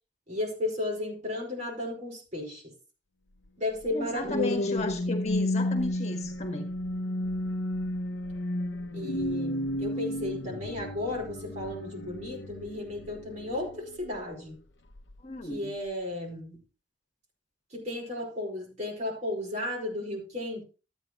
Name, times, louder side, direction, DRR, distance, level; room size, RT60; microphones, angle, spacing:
voice 1, 0.3-2.7 3.6-4.6 8.9-14.6 15.4-16.6 17.7-20.6, left 2 dB, 40° right, 4.9 m, -34 dB
sound 1, 3.8-14.4 14.9-15.2, left 1 dB, 85° left, 0.8 m, -32 dB
voice 2, 3.9-6.7 15.2-15.7, left 2 dB, 40° left, 1.6 m, -35 dB
13.0 x 9.2 x 3.1 m
head